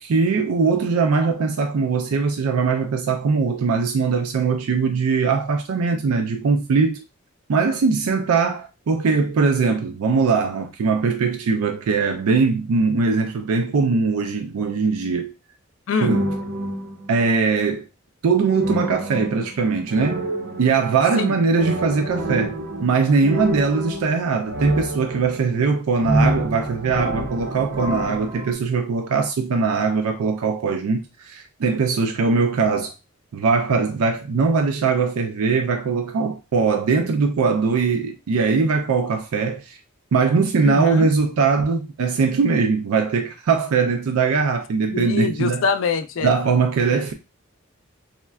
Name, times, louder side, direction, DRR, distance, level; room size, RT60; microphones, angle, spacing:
voice 1, 0.0-7.0 7.5-15.3 16.0-16.3 17.1-17.9 18.2-20.2 20.6-32.9 33.3-39.8 40.1-45.6 46.2-47.1, right 4 dB, 85° right, 0.4 m, -21 dB
sound 1, 16.0-17.2 18.5-21.0 21.5-25.7 26.0-28.5, right 1 dB, 55° right, 0.7 m, -27 dB
voice 2, 40.6-41.1 44.9-46.3 46.9-47.0, left 5 dB, 60° left, 0.4 m, -24 dB
3.6 x 2.1 x 2.3 m
head